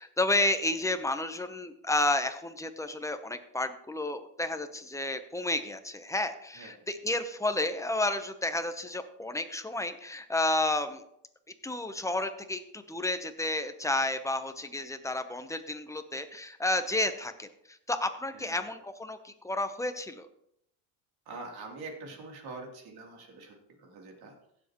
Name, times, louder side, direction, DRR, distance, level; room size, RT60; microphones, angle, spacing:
voice 1, 0.0-11.0 11.6-20.3, left 2 dB, 5° left, 8 dB, 0.9 m, -31 dB
voice 2, 18.3-18.7 21.3-24.3, right 3 dB, 55° right, 0 dB, 3.3 m, -44 dB
16.5 x 7.5 x 3.1 m, 0.74 s
supercardioid pair, 110°, 44 cm